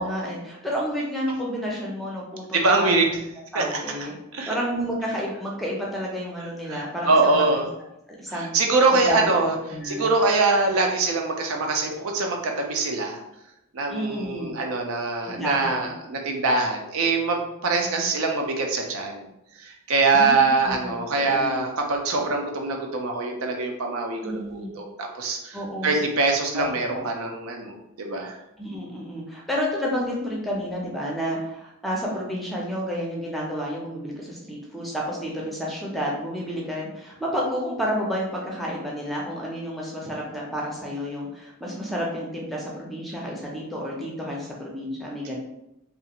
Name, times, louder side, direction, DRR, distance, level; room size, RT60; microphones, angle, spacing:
voice 1, 0.0-3.2 3.5-4.1 4.5-7.6 8.1-8.5 8.9-10.1 13.9-14.5 15.2-15.9 20.1-21.6 24.2-24.8 25.5-26.0 26.5-27.0 28.6-45.4, equal, ahead, -3 dB, 0.5 m, -30 dB
voice 2, 2.5-3.1 3.5-3.8 4.3-4.5 6.7-7.7 8.3-9.6 9.8-13.2 13.7-19.3 19.6-28.4, right 3 dB, 85° right, 2 dB, 0.5 m, -23 dB
2.4 x 2.4 x 2.8 m, 0.86 s
head